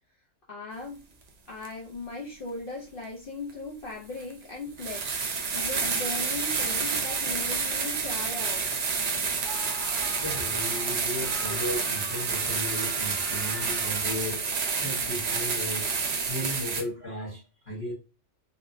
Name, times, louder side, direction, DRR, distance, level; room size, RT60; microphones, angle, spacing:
voice 1, 0.5-1.0 1.5-5.2 5.5-8.6 11.5-11.6, left 3 dB, 55° left, 0.7 m, -38 dB
sound 1, 1.6-1.7 3.5-3.6 4.2-4.3 4.8-16.8, right 5 dB, 70° right, 0.4 m, -29 dB
Screaming, 9.4-14.2, right 2 dB, 45° right, 0.7 m, -43 dB
voice 2, 10.2-17.9, left 1 dB, 30° left, 1.0 m, -36 dB
3.0 x 2.0 x 2.5 m
omnidirectional pair, 1.3 m